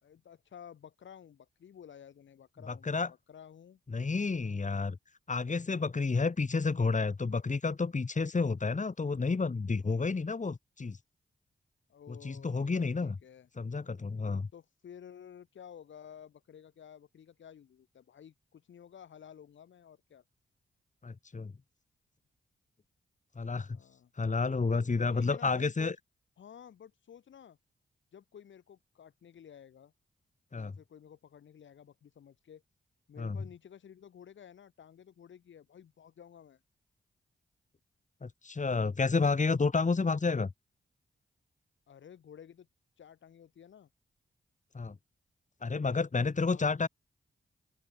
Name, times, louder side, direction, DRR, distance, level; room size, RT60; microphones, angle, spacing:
voice 1, 0.0-3.0 3.3-3.8 11.9-13.5 14.5-20.2 23.7-24.1 25.0-25.9 26.4-27.6 28.1-29.9 30.5-32.6 33.1-36.6 41.9-42.7 43.0-43.9 46.5-46.7, left 8 dB, 85° left, 4.7 m, -53 dB
voice 2, 2.7-3.1 3.9-5.0 5.3-11.0 12.2-13.1 13.6-14.5 21.0-21.5 23.4-23.8 24.2-25.9 30.5-30.7 33.2-33.4 38.2-40.5 44.7-45.0 45.6-46.9, left 4 dB, 40° left, 2.9 m, -30 dB
open air
cardioid pair, 55°, 19 cm